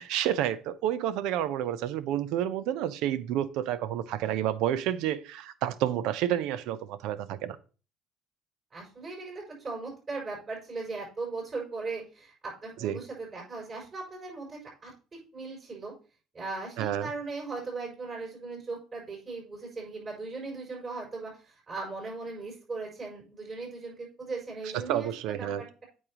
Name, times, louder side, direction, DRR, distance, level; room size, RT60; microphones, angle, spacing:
voice 1, 0.0-7.6 12.8-13.0 16.8-17.1 24.9-25.6, right 11 dB, 75° right, 0.7 m, -30 dB
voice 2, 8.7-15.9 16.3-25.8, right 3 dB, 35° right, 4.8 m, -38 dB
8.6 x 6.4 x 3.0 m
supercardioid pair, 100°, 0 cm